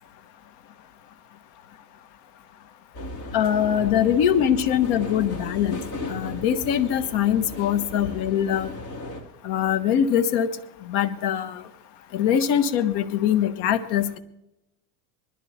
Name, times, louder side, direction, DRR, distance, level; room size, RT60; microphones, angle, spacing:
Train Tube Int Slow Down Doors Open, 2.9-9.2, left 2 dB, 40° left, 3.3 m, -36 dB
voice 1, 3.3-5.8 6.1-8.7 9.4-10.5 10.9-11.6 12.1-14.1, left 9 dB, 60° left, 11 dB, 1.6 m, -22 dB
21.0 x 13.0 x 4.4 m, 0.88 s
supercardioid pair, 130°, 46 cm